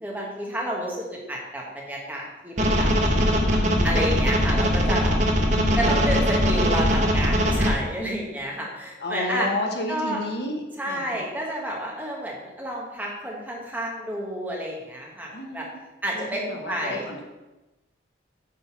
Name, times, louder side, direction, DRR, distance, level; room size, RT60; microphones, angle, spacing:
voice 1, 0.0-2.9 3.8-5.1 5.7-9.5 9.9-10.2 10.8-15.7 16.0-16.4 16.7-17.0, equal, 10° right, -2 dB, 1.3 m, -30 dB
sound 1, 2.6-7.7, equal, 40° right, 1.0 m, -21 dB
voice 2, 3.3-4.2 5.4-6.0 9.0-11.2 15.3-15.7 16.1-17.2, left 1 dB, 60° left, 2 dB, 1.0 m, -32 dB
8.6 x 4.0 x 5.7 m, 1.1 s
head